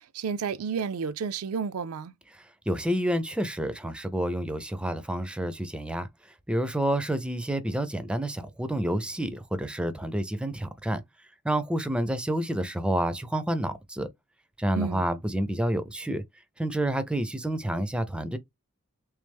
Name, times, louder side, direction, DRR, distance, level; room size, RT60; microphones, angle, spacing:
voice 1, 0.1-2.1 14.8-15.1, right 6 dB, 75° right, 0.4 m, -31 dB
voice 2, 2.3-6.1 6.5-11.0 11.4-14.1 14.6-16.2 16.6-18.4, right 1 dB, 5° right, 0.4 m, -29 dB
3.5 x 3.2 x 3.4 m
head